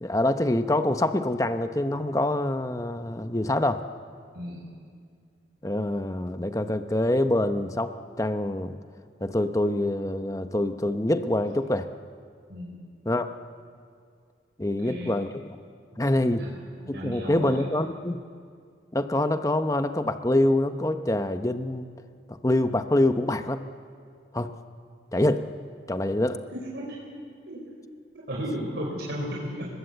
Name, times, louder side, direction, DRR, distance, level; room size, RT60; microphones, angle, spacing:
voice 1, 0.0-3.8 5.6-8.8 9.2-11.9 13.1-13.3 14.6-15.6 16.0-16.4 16.9-18.2 18.9-21.9 22.4-23.6 24.3-24.5 25.1-25.4 25.9-26.4, left 1 dB, 15° left, 9 dB, 0.8 m, -25 dB
voice 2, 14.6-15.1 16.2-17.6 26.5-27.0 27.5-27.6 28.1-29.7, equal, 65° right, -4 dB, 4.7 m, -35 dB
30.0 x 21.0 x 8.1 m, 2.1 s
head